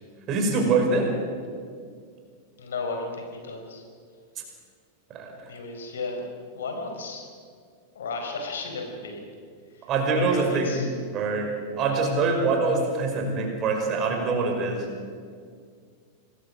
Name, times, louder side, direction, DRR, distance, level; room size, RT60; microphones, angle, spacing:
voice 1, 0.3-1.1 5.1-5.3 9.9-10.7 11.1-14.9, right 3 dB, 35° right, 2 dB, 5.5 m, -24 dB
voice 2, 2.6-3.8 5.5-7.2 7.9-9.2 10.2-10.9, left 3 dB, 65° left, 3 dB, 4.7 m, -34 dB
26.0 x 20.0 x 6.3 m, 2.1 s
figure-of-eight pair, 90°, 0 cm